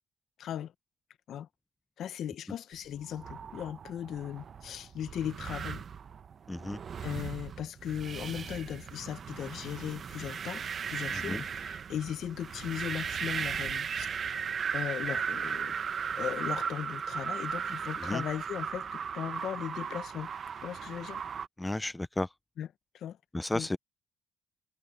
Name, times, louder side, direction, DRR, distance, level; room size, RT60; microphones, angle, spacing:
voice 1, 0.4-0.7 1.3-1.5 2.0-5.8 7.0-14.1 14.7-15.8 16.2-21.2 22.6-22.7 22.9-23.2 23.5-23.7, left 10 dB, 65° left, 1.1 m, -38 dB
sound 1, 2.9-21.5, right 7 dB, 45° right, 0.9 m, -37 dB
voice 2, 6.5-6.8 11.1-11.4 18.0-18.2 21.6-22.3 23.3-23.8, left 1 dB, 10° left, 0.5 m, -33 dB
cardioid pair, 85°, 0 cm